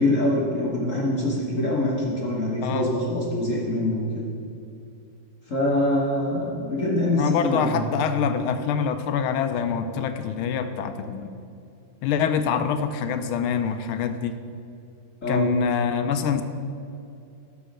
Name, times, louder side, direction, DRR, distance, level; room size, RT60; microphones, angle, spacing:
voice 1, 0.0-4.3 5.5-7.8 15.2-15.5, left 1 dB, 40° left, -4 dB, 1.3 m, -24 dB
voice 2, 2.6-2.9 7.2-11.3 12.0-14.3 15.3-16.4, left 7 dB, 80° left, 9 dB, 1.4 m, -25 dB
11.5 x 4.1 x 6.5 m, 2.5 s
omnidirectional pair, 2.4 m